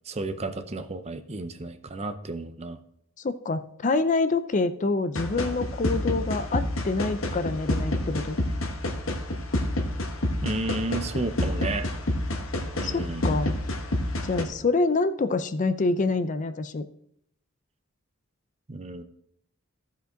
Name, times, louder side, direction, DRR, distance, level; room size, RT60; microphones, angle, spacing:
voice 1, 0.1-2.8 10.4-11.9 12.8-13.3 18.7-19.0, right 2 dB, 30° right, 10 dB, 0.6 m, -32 dB
voice 2, 3.2-8.4 12.8-13.6 14.2-16.8, left 3 dB, 35° left, 11 dB, 0.4 m, -26 dB
sound 1, 5.2-14.4, left 1 dB, 65° left, 1.3 m, -29 dB
14.5 x 5.2 x 3.8 m, 0.72 s
head